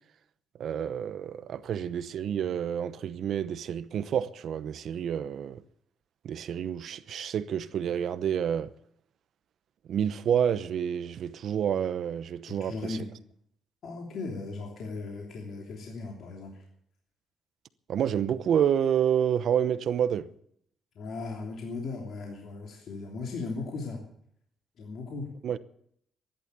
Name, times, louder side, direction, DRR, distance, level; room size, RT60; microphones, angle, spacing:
voice 1, 0.6-5.6 6.2-8.7 9.9-13.0 17.9-20.3 25.4-25.6, right 9 dB, 65° right, 0.8 m, -29 dB
voice 2, 12.5-13.1 13.8-16.6 20.9-24.0 24.8-25.3, left 3 dB, 65° left, 3.2 m, -37 dB
14.5 x 11.5 x 8.3 m
cardioid pair, 90°, 0 cm